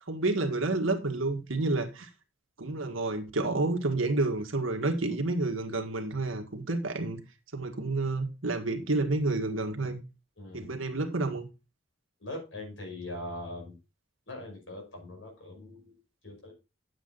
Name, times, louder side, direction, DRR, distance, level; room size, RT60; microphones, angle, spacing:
voice 1, 0.1-2.1 2.6-7.2 7.5-10.0 10.5-11.5, right 2 dB, 90° right, 1.8 m, -29 dB
voice 2, 10.4-10.7 12.2-13.8 14.3-15.9 16.2-16.5, left 1 dB, 70° left, 5.5 m, -41 dB
9.5 x 7.6 x 4.0 m
head